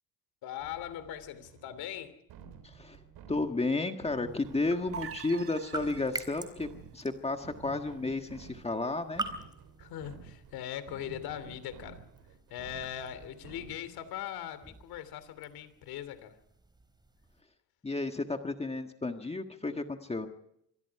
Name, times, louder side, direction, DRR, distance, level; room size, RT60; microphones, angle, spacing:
voice 1, 0.4-2.2 9.8-12.0 12.5-16.4, left 11 dB, 85° left, 13 dB, 3.1 m, -40 dB
sound 1, 0.6-14.1, right 6 dB, 85° right, 4.1 m, -52 dB
voice 2, 2.6-3.0 3.3-6.7 6.9-9.2 17.8-20.3, left 3 dB, 15° left, 6 dB, 1.7 m, -32 dB
sound 2, 4.3-17.4, right 2 dB, 10° right, 4.0 m, -46 dB
sound 3, 4.9-6.6, right 6 dB, 40° right, 1.1 m, -44 dB
26.0 x 23.0 x 4.8 m, 0.77 s
cardioid pair, 115°, 36 cm